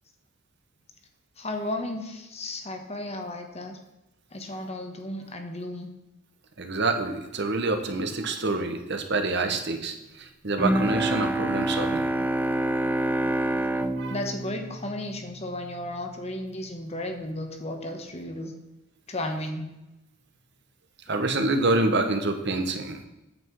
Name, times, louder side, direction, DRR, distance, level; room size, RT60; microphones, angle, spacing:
voice 1, 1.4-3.8 4.3-5.9 14.1-18.5 19.1-19.7, left 1 dB, 30° left, 5 dB, 1.2 m, -34 dB
voice 2, 6.6-12.0 13.8-14.2 21.1-23.1, right 2 dB, 55° right, 6 dB, 1.1 m, -27 dB
Bowed string instrument, 10.6-15.7, right 1 dB, 10° right, 0.5 m, -27 dB
9.0 x 8.0 x 4.7 m, 0.97 s
head